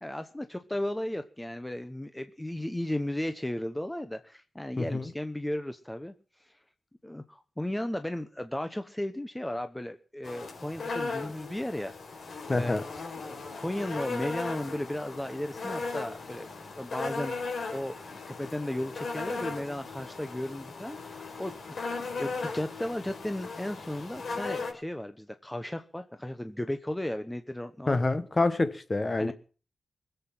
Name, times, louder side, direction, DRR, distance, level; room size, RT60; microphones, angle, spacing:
voice 1, 0.0-6.1 7.0-12.0 12.5-12.7 13.2-16.5 16.8-21.9 22.2-28.0 29.2-29.3, left 1 dB, 10° left, 1.0 m, -35 dB
voice 2, 4.8-5.1 12.5-12.8 27.9-29.3, left 2 dB, 30° left, 1.4 m, -27 dB
sound 1, 10.2-24.7, left 4 dB, 65° left, 4.8 m, -37 dB
20.5 x 8.1 x 7.5 m
wide cardioid pair, 100°, 0 cm